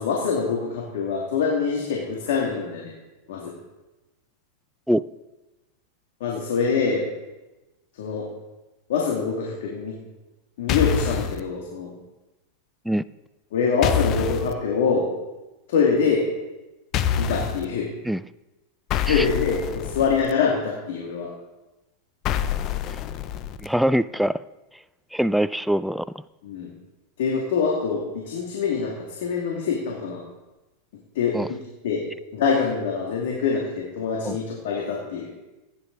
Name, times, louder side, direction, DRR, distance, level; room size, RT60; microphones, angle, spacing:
voice 1, 0.0-2.9 3.3-3.5 6.2-7.0 7.9-8.3 8.9-10.0 10.6-11.9 13.5-15.1 15.7-16.3 17.2-17.9 19.0-21.3 26.4-26.7 27.2-28.9 29.2-30.2 31.1-31.6 31.8-32.0 32.3-35.3, left 5 dB, 75° left, -2 dB, 2.4 m, -24 dB
sound 1, 10.7-11.4 13.8-14.5 16.9-17.6 18.9-20.3 22.2-23.7, left 8 dB, 45° left, 0.8 m, -26 dB
voice 2, 23.6-24.4 25.1-26.0 31.3-31.5 34.2-34.4, equal, ahead, 15 dB, 0.3 m, -23 dB
15.5 x 9.9 x 4.0 m, 1.1 s
hypercardioid pair, 115°, 0 cm